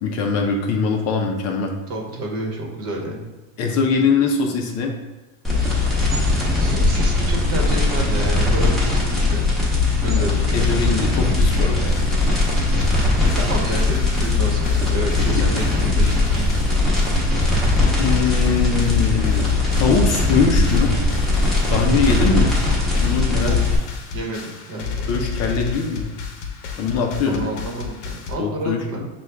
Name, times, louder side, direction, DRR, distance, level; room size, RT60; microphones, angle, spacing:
voice 1, 0.0-1.7 3.6-4.9 10.0-10.3 10.5-11.9 15.4-15.6 18.0-20.9 21.7-22.5 23.0-23.5 25.1-26.1 26.8-27.5 28.4-29.1, left 4 dB, 45° left, 2 dB, 0.6 m, -22 dB
voice 2, 1.9-3.3 6.6-9.5 10.0-10.7 13.3-16.7 23.4-23.8 24.1-25.1 27.3-29.0, right 1 dB, 35° right, 0 dB, 1.1 m, -30 dB
sound 1, 5.4-23.8, left 3 dB, ahead, 1.0 m, -19 dB
sound 2, 11.5-28.3, left 5 dB, 65° left, 0.9 m, -33 dB
5.7 x 2.3 x 3.4 m, 1.2 s
supercardioid pair, 140°, 38 cm